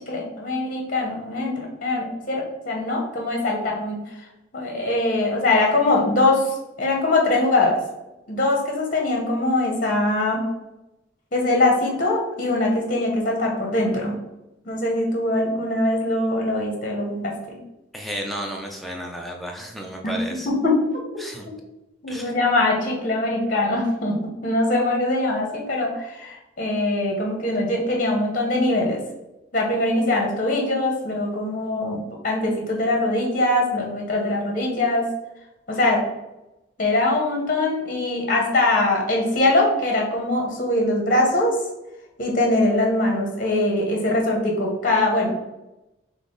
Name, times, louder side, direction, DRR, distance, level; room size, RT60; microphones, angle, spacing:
voice 1, 0.1-4.0 4.5-7.8 8.3-10.5 11.3-14.1 14.6-17.6 20.0-20.2 20.4-20.8 21.4-21.5 22.0-29.0 29.5-35.1 35.7-36.0 36.8-41.6 42.2-45.4, left 2 dB, 45° left, 0 dB, 0.9 m, -22 dB
voice 2, 17.9-20.5 21.2-21.5 22.1-22.3, equal, ahead, 1 dB, 0.4 m, -33 dB
5.5 x 2.0 x 3.8 m, 0.95 s
head